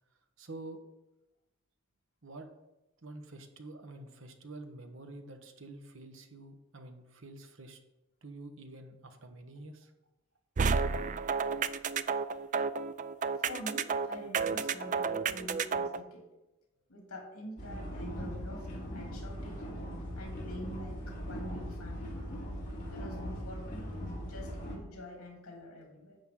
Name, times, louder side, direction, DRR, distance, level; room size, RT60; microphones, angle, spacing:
voice 1, 0.4-0.8 2.2-2.5 3.0-7.8 8.2-9.9, right 2 dB, 60° right, 6 dB, 1.2 m, -48 dB
sound 1, 10.6-16.0, right 5 dB, 35° right, 0.3 m, -31 dB
voice 2, 13.3-16.3 16.9-19.6 20.2-22.2 22.9-26.2, left 1 dB, 75° left, -1 dB, 3.2 m, -46 dB
sound 2, 17.6-24.8, equal, 35° left, 3.3 m, -40 dB
10.5 x 7.8 x 3.8 m, 0.97 s
head